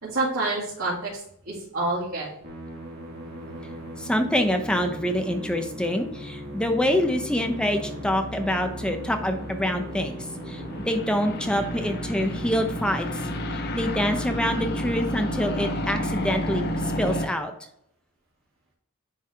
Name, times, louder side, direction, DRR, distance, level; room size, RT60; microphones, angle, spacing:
voice 1, 0.0-2.3, right 2 dB, 80° right, -9 dB, 2.3 m, -28 dB
Musical instrument, 2.4-17.3, equal, 50° right, 1.6 m, -37 dB
sound 1, 2.6-17.3, left 1 dB, 50° left, 0.7 m, -34 dB
voice 2, 4.0-13.1 13.5-17.5, equal, 5° left, 5 dB, 0.7 m, -26 dB
10.0 x 3.4 x 3.5 m, 0.73 s
head